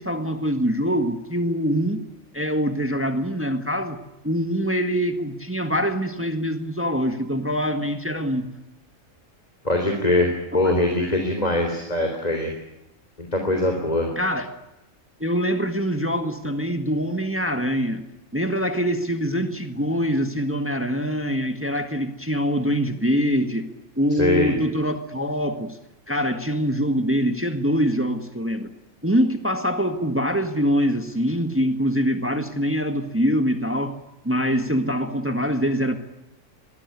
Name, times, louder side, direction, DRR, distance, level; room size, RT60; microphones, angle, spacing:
voice 1, 0.0-2.0 2.3-4.0 4.2-8.5 11.0-11.2 14.1-14.5 15.2-18.0 18.3-23.7 24.0-25.8 26.1-28.7 29.0-34.0 34.2-36.0, equal, 10° right, 7 dB, 1.7 m, -24 dB
voice 2, 9.6-12.5 13.2-14.1 24.2-24.5, left 1 dB, 30° left, 3 dB, 3.7 m, -22 dB
24.5 x 20.0 x 9.7 m, 0.94 s
omnidirectional pair, 1.3 m